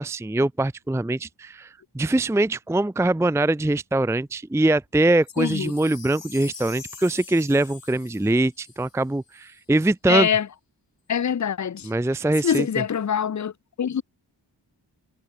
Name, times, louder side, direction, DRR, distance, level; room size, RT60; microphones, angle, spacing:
voice 1, 0.0-10.3 11.8-12.7, right 2 dB, 5° right, 0.6 m, -23 dB
Wind chime, 5.2-9.6 10.2-10.3, left 5 dB, 85° left, 4.9 m, -44 dB
voice 2, 5.4-5.7 10.1-10.5 11.1-11.9 12.4-13.5 13.8-14.0, left 8 dB, 45° left, 0.6 m, -24 dB
wide cardioid pair, 70°, 43 cm